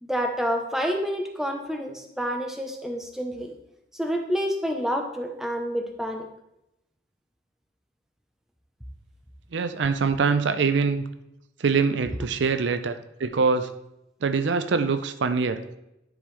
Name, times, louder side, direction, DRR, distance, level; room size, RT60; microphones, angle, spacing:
voice 1, 0.0-3.5 3.9-6.2, equal, ahead, 3 dB, 0.8 m, -28 dB
voice 2, 9.5-11.0 11.6-12.9 13.2-13.7 14.2-15.6, right 5 dB, 70° right, 10 dB, 0.5 m, -23 dB
10.5 x 5.3 x 3.3 m, 0.85 s
head